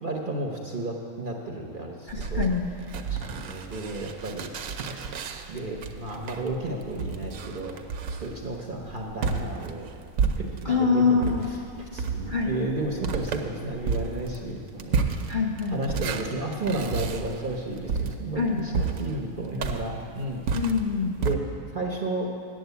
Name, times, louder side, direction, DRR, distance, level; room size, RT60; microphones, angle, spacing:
voice 1, 0.0-2.5 3.0-4.5 5.5-7.8 8.2-9.9 10.4-11.6 11.9-15.1 15.7-20.4 21.2-21.4 21.7-22.3, right 2 dB, 45° right, 0 dB, 0.8 m, -32 dB
voice 2, 2.1-2.7 10.6-11.5 12.3-12.7 15.3-15.8 18.4-18.9 20.5-21.2, left 5 dB, 45° left, -1 dB, 0.7 m, -25 dB
sound 1, 2.1-10.8 11.2-21.3, right 5 dB, 65° right, 1.0 m, -31 dB
8.6 x 7.6 x 8.1 m, 2.4 s
omnidirectional pair, 1.7 m